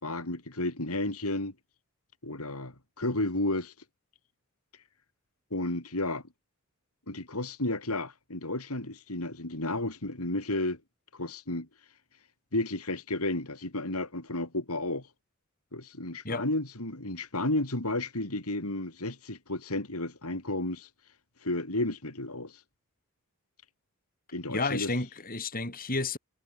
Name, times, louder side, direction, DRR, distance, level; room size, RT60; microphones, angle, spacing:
voice 1, 0.0-1.5 2.2-3.7 5.5-6.2 7.1-10.8 11.1-11.7 12.5-15.1 15.7-20.9 21.4-22.6 24.3-24.9, left 2 dB, 85° left, 5.0 m, -32 dB
voice 2, 24.5-26.2, left 3 dB, 40° left, 6.7 m, -31 dB
head